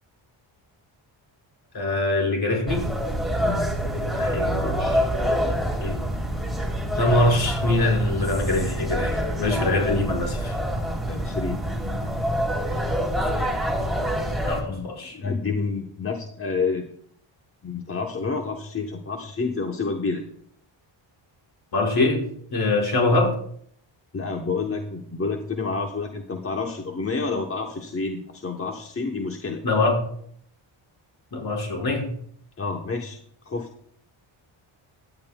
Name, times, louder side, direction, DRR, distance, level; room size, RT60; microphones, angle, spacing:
voice 1, 1.7-2.8 4.1-6.0 6.9-10.6 14.4-15.2 21.7-22.2 22.5-23.4 29.6-30.0 31.3-32.1, left 2 dB, 50° left, 0 dB, 5.3 m, -24 dB
sound 1, 2.7-14.6, equal, ahead, 3.1 m, -26 dB
voice 2, 11.1-11.6 14.7-16.8 17.6-20.2 24.1-29.6 32.6-33.2 33.4-33.7, left 4 dB, 25° left, 2 dB, 1.0 m, -29 dB
17.0 x 11.0 x 2.3 m, 0.64 s
wide cardioid pair, 130°, 49 cm